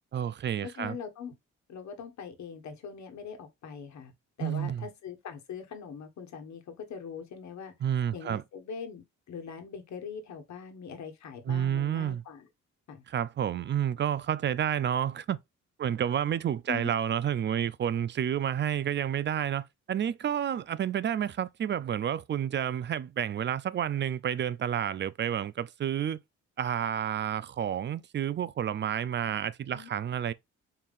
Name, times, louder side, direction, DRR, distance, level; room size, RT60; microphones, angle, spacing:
voice 1, 0.1-1.0 4.4-4.9 7.8-8.4 11.5-12.2 13.1-15.4 15.8-26.2 26.6-30.3, right 9 dB, 40° right, 0.4 m, -30 dB
voice 2, 0.7-1.3 1.7-4.1 4.4-7.7 8.1-12.5 12.9-13.0 16.7-17.0 29.7-29.9, left 6 dB, 65° left, 1.3 m, -42 dB
4.6 x 3.6 x 2.4 m
cardioid pair, 90°, 30 cm